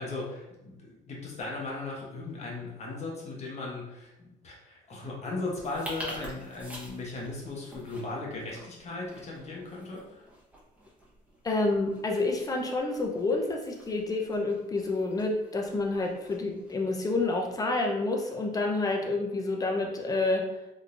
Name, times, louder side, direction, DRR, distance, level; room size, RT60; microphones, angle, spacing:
voice 1, 0.0-10.2, left 3 dB, 40° left, -3 dB, 1.2 m, -37 dB
sound 1, 5.5-17.6, right 1 dB, 10° right, 1.1 m, -48 dB
voice 2, 11.4-20.5, left 2 dB, 20° left, 1 dB, 0.6 m, -28 dB
3.7 x 2.8 x 2.5 m, 0.95 s
cardioid pair, 110°, 17 cm